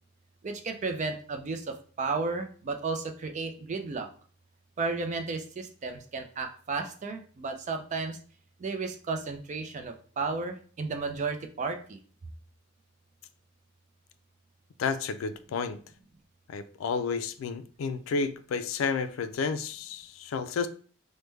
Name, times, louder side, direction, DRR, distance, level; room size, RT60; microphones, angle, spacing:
voice 1, 0.4-4.1 4.8-8.2 8.6-12.0, right 4 dB, 35° right, 0.4 m, -33 dB
voice 2, 14.8-15.8 16.5-20.7, left 5 dB, 85° left, 0.3 m, -31 dB
3.3 x 2.1 x 3.1 m
head